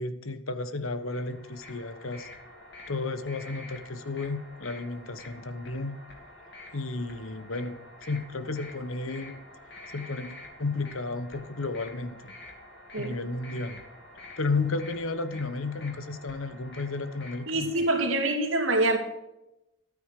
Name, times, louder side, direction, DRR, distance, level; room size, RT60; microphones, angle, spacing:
voice 1, 0.0-2.3 2.9-6.0 6.7-9.4 9.9-12.3 13.0-13.8 14.4-17.7, left 3 dB, 90° left, 1.2 m, -33 dB
sound 1, 1.0-18.0, left 2 dB, 55° left, 3.0 m, -48 dB
voice 2, 17.5-19.0, right 2 dB, 75° right, 2.7 m, -25 dB
13.0 x 9.3 x 6.7 m
head